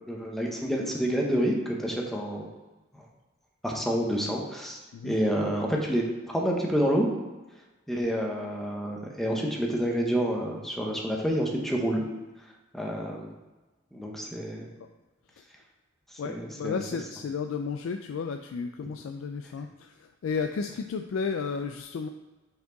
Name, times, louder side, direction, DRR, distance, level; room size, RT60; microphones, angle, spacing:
voice 1, 0.1-2.5 2.9-3.1 3.6-4.8 5.0-7.1 7.9-12.0 12.7-13.3 13.9-14.7 16.1-16.8, equal, ahead, -1 dB, 0.9 m, -28 dB
voice 2, 16.2-22.1, left 5 dB, 85° left, 6 dB, 0.3 m, -33 dB
5.5 x 4.4 x 3.8 m, 1.1 s
head